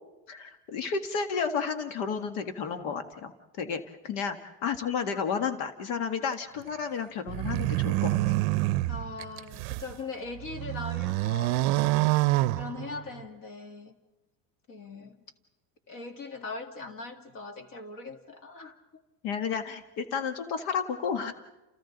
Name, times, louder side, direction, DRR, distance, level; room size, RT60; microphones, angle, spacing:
voice 1, 0.3-8.2 19.2-21.3, left 6 dB, 65° left, 1.5 m, -32 dB
sound 1, 7.3-9.9 10.4-13.2, right 18 dB, 70° right, 0.6 m, -27 dB
voice 2, 8.9-12.0 12.6-14.0 14.7-15.3 15.9-18.8, left 3 dB, 45° left, 2.1 m, -40 dB
29.5 x 28.5 x 3.9 m
cardioid pair, 160°, 45 cm